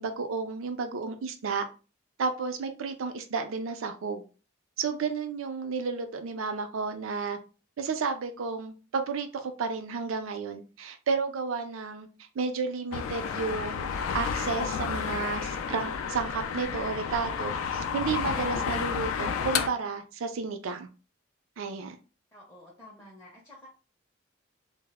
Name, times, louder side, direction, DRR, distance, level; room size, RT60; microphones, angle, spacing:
voice 1, 0.0-1.6 2.2-4.2 4.8-7.4 7.8-12.1 12.4-20.9 21.6-22.0, right 5 dB, 75° right, 7 dB, 0.4 m, -32 dB
sound 1, 12.9-19.7, left 6 dB, 80° left, 0.3 m, -31 dB
voice 2, 22.3-23.7, left 1 dB, 10° left, -4 dB, 0.5 m, -50 dB
2.0 x 2.0 x 3.4 m, 0.34 s
head